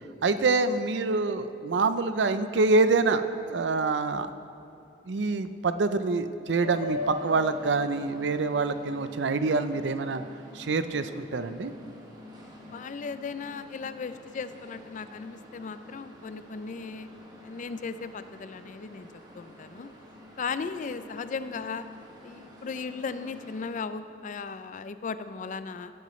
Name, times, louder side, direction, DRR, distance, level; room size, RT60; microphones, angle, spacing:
voice 1, 0.2-3.2 3.5-4.3 5.1-10.2 10.5-11.7, right 3 dB, 75° right, 11 dB, 0.5 m, -26 dB
sound 1, 6.6-23.7, left 2 dB, 25° right, 1.5 m, -44 dB
voice 2, 12.7-17.1 17.4-19.1 19.3-19.9 20.4-21.8 22.2-25.9, left 5 dB, 45° left, 12 dB, 0.4 m, -36 dB
16.5 x 9.2 x 3.1 m, 2.7 s
head